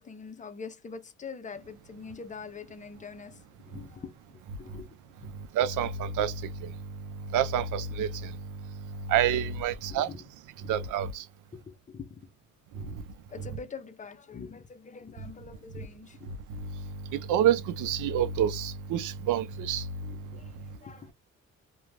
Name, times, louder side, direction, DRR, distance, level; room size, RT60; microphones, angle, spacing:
voice 1, 0.0-4.9 9.9-10.2 10.6-10.7 11.5-12.2 12.7-12.9 13.3-16.3 20.3-20.5 20.8-21.1, left 5 dB, 25° left, 0.5 m, -44 dB
voice 2, 5.6-6.3 7.3-8.1 9.1-10.1 10.7-11.2 17.1-19.8, right 9 dB, 90° right, 0.5 m, -27 dB
2.4 x 2.2 x 3.1 m
cardioid pair, 90°, 30 cm